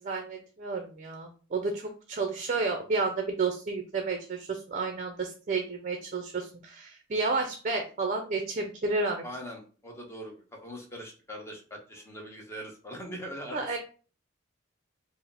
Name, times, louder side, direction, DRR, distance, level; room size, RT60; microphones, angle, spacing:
voice 1, 0.0-9.2 13.5-13.8, right 3 dB, 40° right, 5 dB, 0.5 m, -31 dB
voice 2, 9.2-13.6, equal, 15° left, 1 dB, 0.9 m, -41 dB
4.7 x 2.0 x 3.4 m, 0.38 s
head